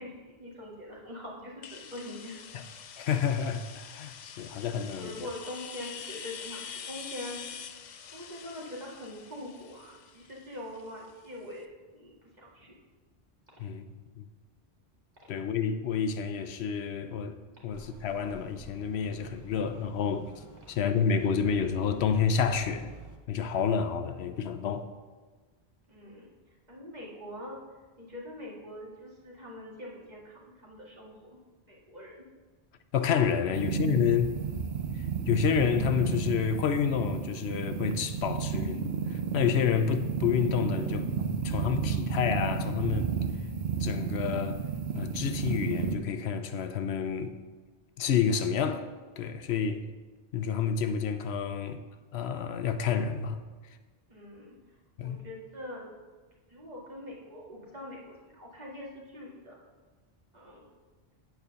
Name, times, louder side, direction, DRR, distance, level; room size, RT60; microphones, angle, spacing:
voice 1, 0.0-2.4 5.0-7.6 8.1-11.7 11.9-12.7 25.9-26.3 26.7-27.6 28.0-31.4 31.7-32.2 54.1-54.6 55.0-55.9 56.5-59.6 60.3-60.6, left 1 dB, 40° right, 2.0 m, -43 dB
sound 1, 1.6-11.3, left 7 dB, 55° left, 0.6 m, -45 dB
voice 2, 3.0-5.1 13.6-13.8 14.2-14.3 15.3-17.4 17.6-22.9 23.3-24.9 32.9-34.3 34.9-41.1 41.4-43.1 43.8-44.6 44.9-47.3 48.0-48.9 49.2-49.8 50.3-51.8 52.1-53.8 55.0-55.2, left 7 dB, 80° left, 0.9 m, -29 dB
sound 2, 17.7-23.2, right 3 dB, 20° right, 0.8 m, -51 dB
sound 3, 33.5-45.9, right 6 dB, 75° right, 1.0 m, -32 dB
9.2 x 4.6 x 6.8 m
omnidirectional pair, 1.1 m